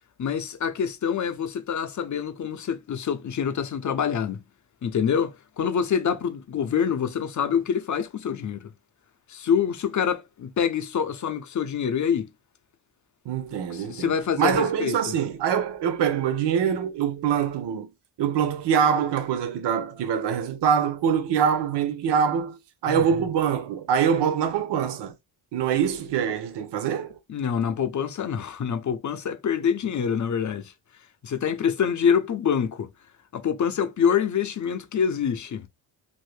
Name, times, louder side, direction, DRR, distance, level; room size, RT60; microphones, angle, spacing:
voice 1, 0.2-4.4 4.8-8.7 9.3-12.3 13.7-15.1 22.8-23.0 27.3-30.7 31.2-32.9 33.3-35.7, left 7 dB, 40° left, 0.6 m, -26 dB
voice 2, 13.3-17.9 18.2-25.1 25.5-27.2, right 8 dB, 55° right, 0.7 m, -24 dB
2.7 x 2.6 x 3.2 m
cardioid pair, 80°, 49 cm